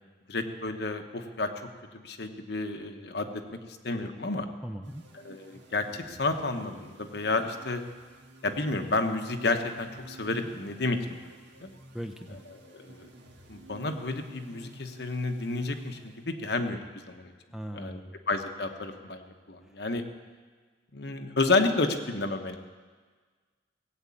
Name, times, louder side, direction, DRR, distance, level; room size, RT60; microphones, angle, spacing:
voice 1, 0.3-1.7 1.9-3.4 3.8-4.5 5.1-7.8 8.4-11.2 11.6-11.7 12.7-13.1 13.5-16.8 17.1-17.3 17.7-18.0 18.3-20.0 20.9-22.6, left 3 dB, 60° left, 6 dB, 1.1 m, -31 dB
voice 2, 4.6-5.0 11.9-12.4 17.5-18.1, equal, ahead, 6 dB, 0.6 m, -39 dB
sound 1, 4.8-16.6, right 1 dB, 65° right, 1.8 m, -52 dB
18.0 x 8.1 x 8.6 m, 1.5 s
head